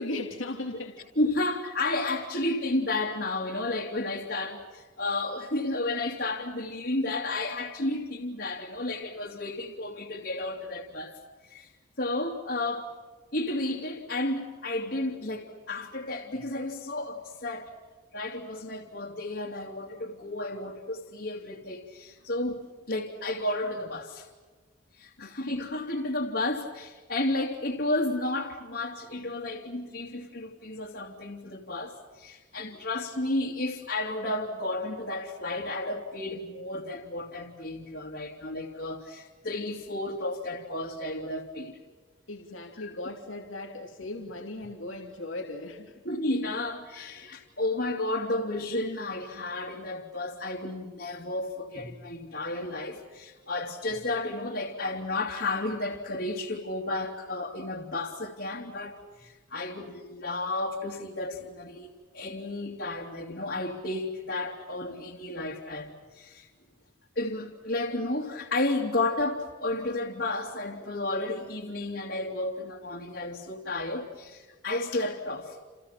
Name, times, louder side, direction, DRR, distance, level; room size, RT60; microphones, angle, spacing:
voice 1, 0.0-1.0 25.2-25.4 42.3-45.9, left 2 dB, 90° left, 3.1 m, -37 dB
voice 2, 1.2-11.2 11.4-11.7 12.0-12.9 13.3-17.7 18.1-24.3 25.0-41.8 42.8-42.9 46.0-66.5 67.2-75.6, left 2 dB, 60° left, 2.9 m, -32 dB
30.0 x 29.5 x 5.9 m
head